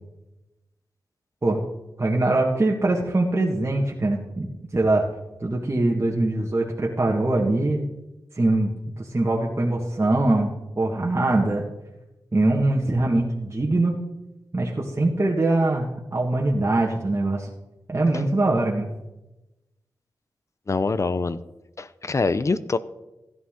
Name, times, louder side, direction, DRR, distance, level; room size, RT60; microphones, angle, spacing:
voice 1, 2.0-4.5 4.7-5.0 5.4-7.8 8.3-11.6 12.3-13.9 14.5-17.5 17.9-18.9, right 2 dB, 35° right, -2 dB, 1.7 m, -22 dB
voice 2, 20.7-21.4 21.8-22.8, left 3 dB, 40° left, 15 dB, 0.7 m, -24 dB
16.0 x 11.0 x 3.8 m, 1.0 s
cardioid pair, 55°, 8 cm